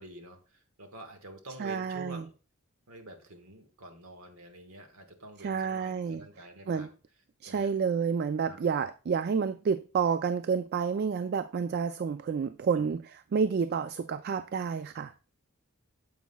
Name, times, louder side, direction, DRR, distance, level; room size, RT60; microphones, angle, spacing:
voice 1, 0.0-2.3 2.9-6.9 7.4-7.8 8.4-8.6 12.8-12.9, right 1 dB, 75° right, 1.4 m, -48 dB
voice 2, 1.6-2.2 5.4-6.2 6.7-6.9 7.4-13.0 13.3-15.1, right 6 dB, 50° right, 0.3 m, -29 dB
9.3 x 7.3 x 2.2 m
head